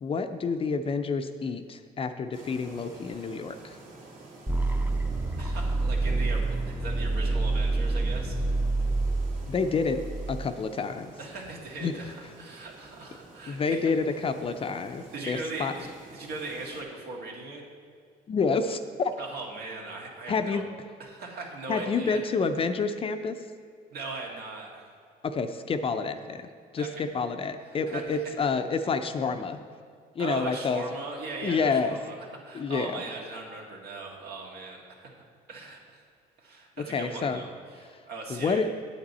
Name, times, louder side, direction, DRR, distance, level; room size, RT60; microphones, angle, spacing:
voice 1, 0.0-3.8 9.5-11.1 11.8-12.0 13.5-15.7 18.3-19.1 20.3-20.7 21.7-23.4 25.2-29.6 30.2-30.8 31.4-32.0 32.5-33.0 36.8-37.4 38.3-38.7, left 4 dB, 35° left, 8 dB, 0.5 m, -29 dB
sound 1, 2.3-16.8, right 3 dB, 50° right, 2.1 m, -50 dB
sound 2, 4.5-10.5, right 2 dB, 10° right, 0.7 m, -27 dB
voice 2, 5.4-8.5 11.2-13.9 15.1-17.6 19.2-20.6 21.0-22.2 23.9-24.9 26.8-27.0 27.9-28.2 30.2-32.2 32.5-35.1 35.5-36.0 36.4-37.5 37.8-38.6, right 3 dB, 70° right, -1 dB, 1.9 m, -39 dB
8.7 x 8.6 x 4.2 m, 2.2 s
cardioid pair, 110°, 17 cm